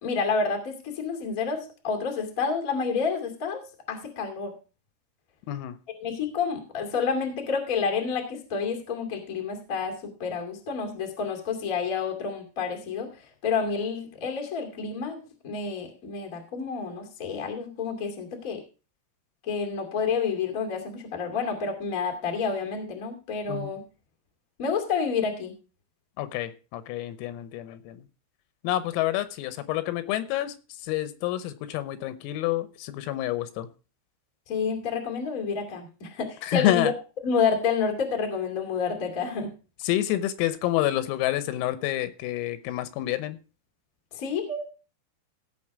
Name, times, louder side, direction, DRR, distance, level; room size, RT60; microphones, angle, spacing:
voice 1, 0.0-3.6 3.9-4.5 6.0-13.1 13.4-18.6 19.4-23.8 24.6-25.5 34.5-36.9 37.2-39.5 44.1-44.7, left 5 dB, 75° left, 3 dB, 0.7 m, -29 dB
voice 2, 26.2-28.0 28.6-30.6 30.8-33.7 36.4-36.9 39.8-43.4, left 14 dB, 90° left, 13 dB, 3.6 m, -28 dB
16.5 x 6.0 x 4.7 m, 0.34 s
omnidirectional pair, 6.0 m